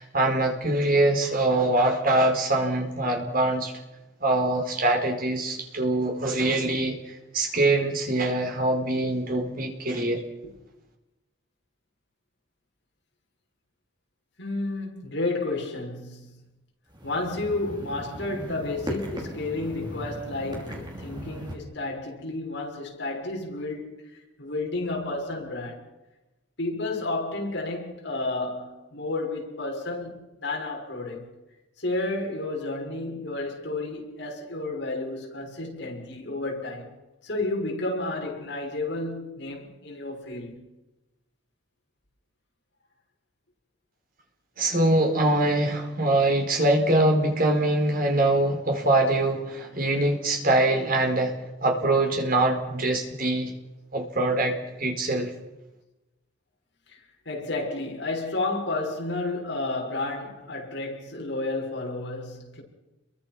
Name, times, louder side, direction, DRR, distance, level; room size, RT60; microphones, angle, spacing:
voice 1, 0.0-3.7 4.2-10.2 44.6-51.4 51.6-53.5 53.9-55.3, right 2 dB, 45° right, 4.8 m, -23 dB
voice 2, 14.4-16.4 17.0-25.8 26.6-31.3 31.8-36.9 37.2-40.6 56.9-62.6, left 2 dB, 60° left, 6.5 m, -31 dB
sound 1, 16.9-21.5, equal, 25° right, 5.4 m, -37 dB
30.0 x 23.0 x 6.2 m
head